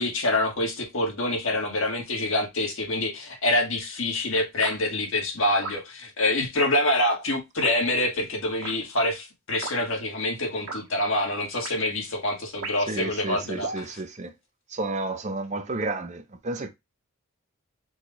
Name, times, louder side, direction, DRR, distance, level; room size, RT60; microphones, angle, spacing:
voice 1, 0.0-13.7, left 1 dB, 65° left, 1.7 m, -26 dB
sound 1, 4.6-4.8 5.6-5.8 6.6-6.8 7.6-7.8 8.6-8.8 9.6-9.8 10.7-10.8 11.6-11.8 12.6-12.9 13.6-13.8, right 3 dB, 75° right, 1.4 m, -35 dB
voice 2, 12.9-14.3 14.7-16.7, right 2 dB, 30° right, 0.6 m, -31 dB
4.7 x 2.4 x 4.1 m
head